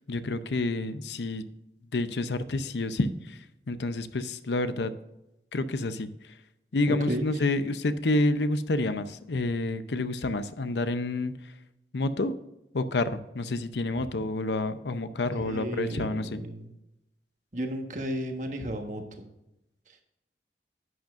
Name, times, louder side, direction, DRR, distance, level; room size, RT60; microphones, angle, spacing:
voice 1, 0.1-1.4 1.9-3.4 3.7-4.9 5.5-6.1 6.7-11.3 11.9-12.3 12.7-16.4, left 2 dB, 80° left, 11 dB, 0.7 m, -28 dB
voice 2, 6.9-7.2 15.3-16.7 17.5-19.0, equal, 45° right, 4 dB, 1.4 m, -33 dB
11.0 x 9.0 x 2.5 m, 0.90 s
head